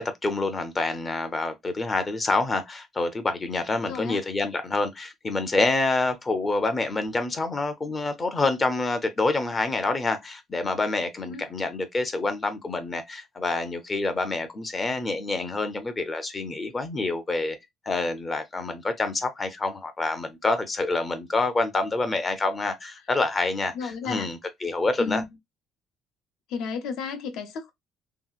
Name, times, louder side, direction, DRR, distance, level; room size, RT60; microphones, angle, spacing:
voice 1, 0.0-17.6 17.9-25.2, left 3 dB, 20° left, 0.4 m, -27 dB
voice 2, 3.9-4.2 11.2-11.5 23.7-24.3 25.0-25.2 26.5-27.7, left 5 dB, 75° left, 0.7 m, -32 dB
3.0 x 2.8 x 2.3 m
cardioid pair, 165°, 0 cm